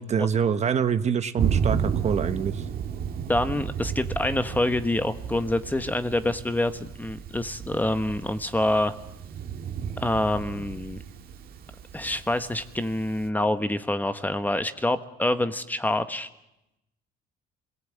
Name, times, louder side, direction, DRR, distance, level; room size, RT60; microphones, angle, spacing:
voice 1, 0.0-2.6, right 7 dB, 40° right, 11 dB, 1.1 m, -25 dB
Thunder, 1.4-13.3, right 7 dB, 60° right, 1.9 m, -32 dB
voice 2, 3.3-8.9 10.0-11.0 11.9-16.3, left 1 dB, 10° left, 10 dB, 1.2 m, -26 dB
26.5 x 18.5 x 8.6 m, 0.90 s
cardioid pair, 110°, 17 cm